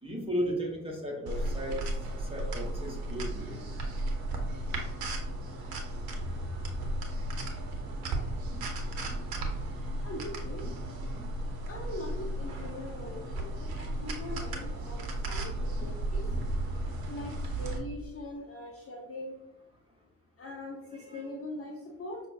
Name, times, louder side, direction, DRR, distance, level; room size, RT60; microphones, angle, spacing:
voice 1, 0.0-1.9 2.2-3.6 20.9-21.2, equal, 15° right, -1 dB, 1.4 m, -35 dB
sound 1, 1.3-17.8, right 1 dB, 55° right, 1.0 m, -34 dB
voice 2, 10.0-10.6 11.7-16.4 17.1-19.4 20.4-22.2, left 2 dB, 30° left, 1 dB, 0.8 m, -42 dB
5.8 x 2.4 x 2.7 m, 0.97 s
figure-of-eight pair, 45°, 43 cm